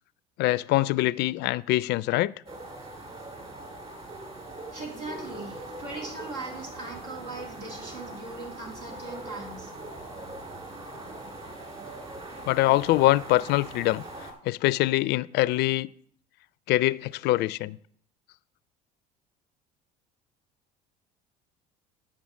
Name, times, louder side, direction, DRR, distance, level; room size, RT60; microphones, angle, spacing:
voice 1, 0.4-2.3 12.5-14.0 14.4-15.9 16.7-17.8, left 17 dB, 55° left, 0.4 m, -24 dB
sound 1, 2.5-14.3, right 2 dB, 30° right, 3.0 m, -41 dB
voice 2, 4.7-9.7, right 2 dB, 80° right, 2.6 m, -39 dB
8.5 x 6.0 x 6.2 m
hypercardioid pair, 70°, 20 cm